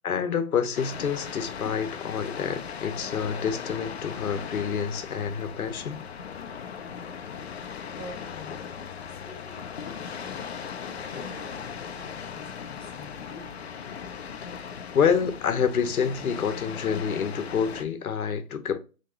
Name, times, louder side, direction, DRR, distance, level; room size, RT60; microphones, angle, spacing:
voice 1, 0.0-6.0 14.9-18.8, left 7 dB, 75° left, 0.8 m, -27 dB
sound 1, 0.7-17.8, left 7 dB, 50° left, 0.4 m, -38 dB
voice 2, 8.0-8.5 9.1-10.4 10.8-13.7, left 1 dB, 20° right, 0.6 m, -47 dB
3.4 x 2.9 x 2.7 m
hypercardioid pair, 155°, 43 cm